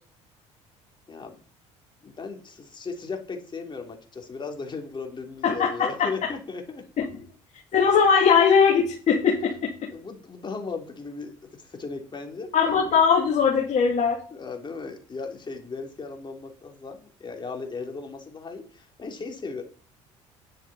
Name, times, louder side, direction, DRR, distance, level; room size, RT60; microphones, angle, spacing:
voice 1, 2.0-6.8 9.9-12.5 14.3-19.6, left 4 dB, 30° left, 3 dB, 3.3 m, -36 dB
voice 2, 5.4-6.1 7.0-7.1 7.7-9.9 12.5-14.2, left 6 dB, 50° left, -2 dB, 3.0 m, -20 dB
10.5 x 9.2 x 4.3 m, 0.41 s
supercardioid pair, 75°, 15 cm